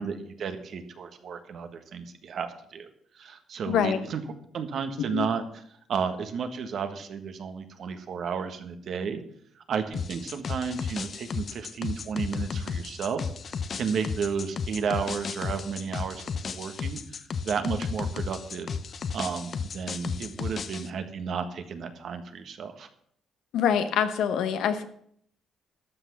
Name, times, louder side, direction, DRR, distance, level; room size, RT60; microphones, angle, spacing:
voice 1, 0.0-2.9 3.1-4.2 4.5-5.6 5.9-9.2 9.6-18.7 19.1-22.9, right 6 dB, 60° right, 8 dB, 1.5 m, -33 dB
voice 2, 3.7-4.0 5.1-5.3 23.5-24.8, left 8 dB, 80° left, 10 dB, 1.1 m, -25 dB
sound 1, 9.9-20.9, left 6 dB, 50° left, 0.7 m, -34 dB
12.5 x 6.2 x 7.1 m, 0.66 s
cardioid pair, 90°, 0 cm